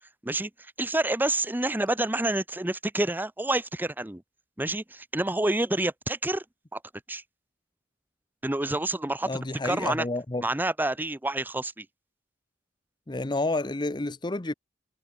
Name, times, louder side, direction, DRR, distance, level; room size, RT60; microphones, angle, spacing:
voice 1, 0.2-4.2 4.6-6.4 6.7-6.8 7.1-7.2 8.4-9.3 9.6-10.0 10.4-11.9, right 2 dB, 10° right, 0.7 m, -28 dB
voice 2, 9.2-10.4 13.1-14.5, left 2 dB, 25° left, 0.8 m, -30 dB
head